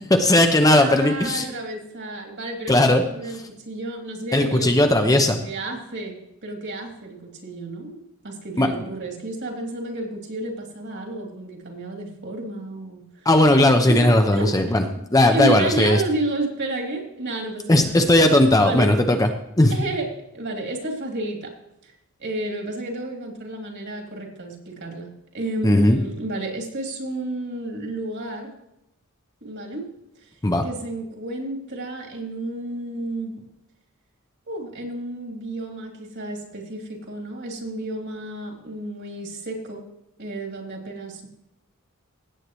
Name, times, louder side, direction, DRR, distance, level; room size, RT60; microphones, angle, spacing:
voice 1, 0.1-1.5 2.7-3.0 4.3-5.4 8.6-8.9 13.3-14.8 15.1-16.0 17.7-19.3 19.6-19.8 25.6-26.0 30.4-30.6, left 1 dB, 15° left, 5 dB, 0.8 m, -17 dB
voice 2, 0.8-3.4 3.6-13.0 13.9-14.7 15.2-18.9 19.7-21.5 21.8-21.9 22.2-25.1 25.3-28.5 29.4-29.8 30.6-33.3 34.5-39.8 40.2-41.3, right 2 dB, 55° right, 1 dB, 2.9 m, -31 dB
16.5 x 8.5 x 3.1 m, 0.83 s
head